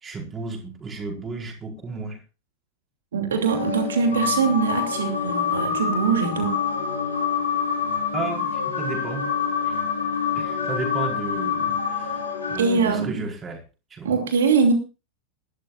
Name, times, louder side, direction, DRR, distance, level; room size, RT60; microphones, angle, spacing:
voice 1, 0.0-2.2 8.1-9.3 9.6-9.8 10.3-12.2 12.5-13.6 13.9-14.2, right 4 dB, 20° right, 2 dB, 5.0 m, -33 dB
voice 2, 3.1-6.5 12.6-13.2 14.0-14.7, right 5 dB, 65° right, 5 dB, 2.7 m, -22 dB
sound 1, 3.4-12.6, left 6 dB, 75° left, 3.8 m, -26 dB
22.5 x 12.5 x 2.5 m, 0.31 s
figure-of-eight pair, 90°, 0 cm